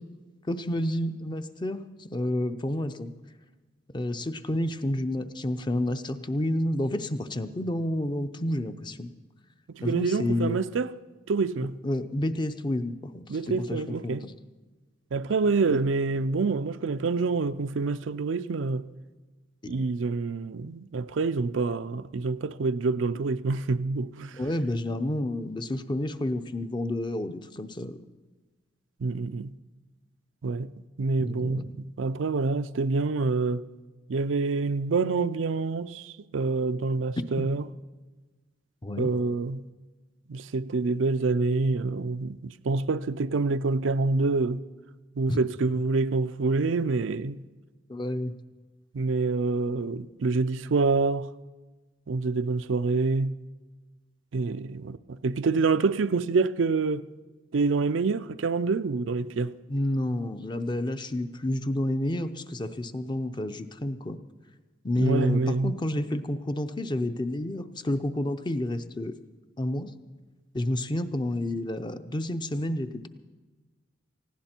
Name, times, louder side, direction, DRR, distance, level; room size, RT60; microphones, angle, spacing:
voice 1, 0.5-3.1 3.9-9.1 9.8-10.6 11.8-14.3 15.7-15.8 24.3-28.0 31.2-31.8 37.4-37.5 38.8-39.1 45.3-45.4 47.9-48.3 59.7-64.2 64.8-69.1 69.6-69.9 70.5-73.1, left 1 dB, 25° left, 0.6 m, -30 dB
voice 2, 9.8-10.9 11.3-11.8 13.3-14.3 15.1-18.9 19.7-24.4 29.0-29.5 30.4-30.7 31.0-31.7 32.0-33.6 34.1-37.6 39.0-39.6 40.3-44.6 45.2-47.4 48.9-51.3 52.1-53.3 54.3-57.1 57.5-59.5 65.0-65.7, right 3 dB, 80° right, 0.5 m, -26 dB
19.0 x 16.0 x 4.4 m
head